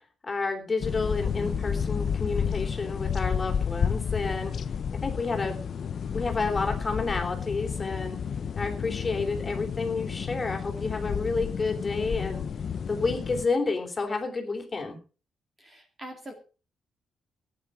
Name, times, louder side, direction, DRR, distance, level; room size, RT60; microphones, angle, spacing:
voice 1, 0.2-4.5 4.9-5.6 6.1-8.2 8.6-12.4 12.9-15.0, left 3 dB, 20° left, 3 dB, 3.4 m, -30 dB
sound 1, 0.8-13.5, left 7 dB, 45° left, 0.8 m, -31 dB
voice 2, 15.6-16.3, right 1 dB, 20° right, 4 dB, 2.3 m, -43 dB
17.5 x 9.5 x 4.8 m, 0.35 s
cardioid pair, 165°, 0 cm